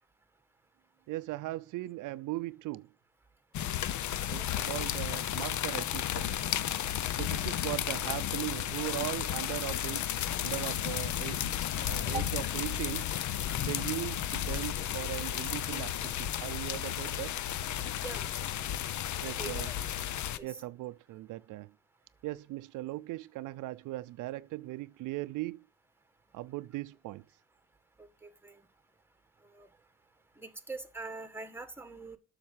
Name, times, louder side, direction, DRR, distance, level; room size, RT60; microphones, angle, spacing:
voice 1, 1.1-2.9 4.3-6.3 7.2-11.4 11.8-13.1 13.6-17.4 19.2-19.7 20.4-21.7 22.2-25.7 26.3-27.2, right 18 dB, 85° right, 0.5 m, -39 dB
sound 1, 3.5-20.4, left 11 dB, 70° left, 0.8 m, -33 dB
voice 2, 17.9-18.3 19.2-19.8 20.3-20.5 28.0-28.6 29.5-29.7 30.4-32.2, right 4 dB, 5° right, 1.5 m, -43 dB
7.8 x 6.5 x 7.3 m
cardioid pair, 90°, 30 cm